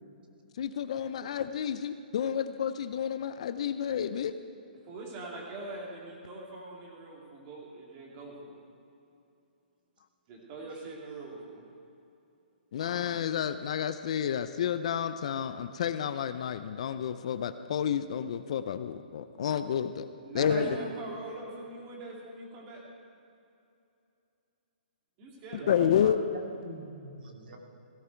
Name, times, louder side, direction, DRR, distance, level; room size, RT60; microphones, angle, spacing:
voice 1, 0.6-4.3 12.7-20.1 20.3-20.7 25.7-26.2, left 9 dB, 40° left, 11 dB, 0.5 m, -30 dB
voice 2, 4.7-8.6 10.3-11.6 20.2-22.8 25.2-25.9, right 2 dB, 20° right, -2 dB, 2.5 m, -42 dB
voice 3, 20.4-20.9 25.6-27.6, right 3 dB, 65° right, 1 dB, 2.4 m, -41 dB
17.0 x 14.0 x 4.5 m, 2.7 s
hypercardioid pair, 175°, 5 cm